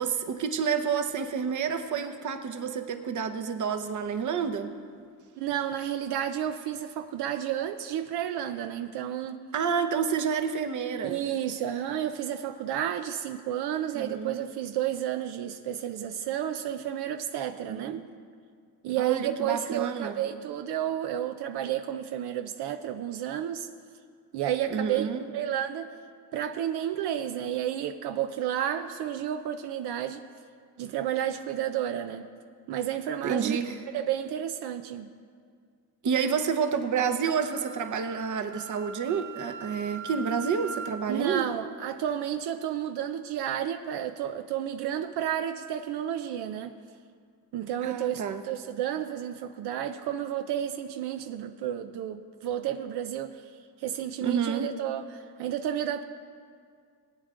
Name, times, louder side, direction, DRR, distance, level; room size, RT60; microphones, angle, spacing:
voice 1, 0.0-4.7 9.5-11.2 13.9-14.4 17.6-18.0 19.0-20.2 24.7-25.2 33.2-33.8 36.0-41.5 47.8-48.4 54.2-54.7, right 6 dB, 50° right, 8 dB, 1.0 m, -29 dB
voice 2, 5.4-9.4 11.0-18.0 18.8-23.7 24.3-25.9 26.3-30.2 30.8-32.3 32.7-33.6 33.9-35.1 41.1-46.7 47.5-53.4 53.8-56.0, right 10 dB, 85° right, 8 dB, 0.7 m, -31 dB
Wind instrument woodwind instrument, 37.3-41.0, right 5 dB, 5° right, 0.8 m, -41 dB
21.0 x 8.9 x 3.7 m, 2.2 s
cardioid pair, 125°, 38 cm